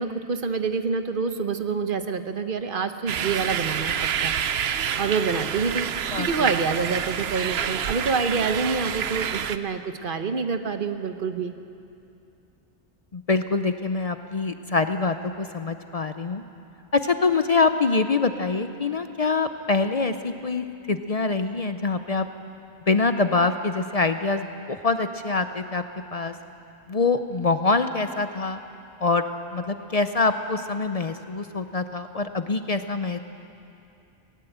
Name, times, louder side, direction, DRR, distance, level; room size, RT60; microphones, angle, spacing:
voice 1, 0.0-4.3 5.0-5.9 6.1-11.5, right 5 dB, 60° right, 8 dB, 1.1 m, -27 dB
sound 1, 3.1-9.6, right 8 dB, 80° right, 0.9 m, -28 dB
voice 2, 13.1-16.4 16.9-22.3 22.9-25.8 26.1-26.3 26.9-28.6 29.0-29.2 29.5-33.2, left 3 dB, 40° left, 9 dB, 0.7 m, -24 dB
18.5 x 18.5 x 8.0 m, 2.7 s
omnidirectional pair, 1.0 m